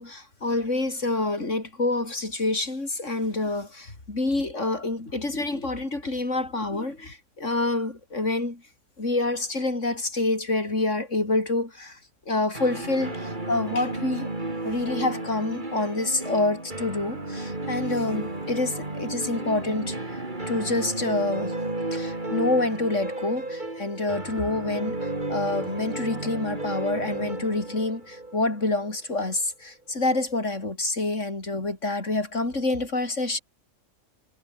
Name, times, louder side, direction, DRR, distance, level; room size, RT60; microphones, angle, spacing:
voice 1, 0.0-8.6 9.0-12.0 12.3-14.3 14.6-20.2 20.5-21.6 21.9-25.0 25.3-33.4, left 2 dB, 60° left, 5.2 m, -27 dB
sound 1, 12.5-29.3, right 2 dB, 35° right, 3.9 m, -33 dB
omnidirectional pair, 1.4 m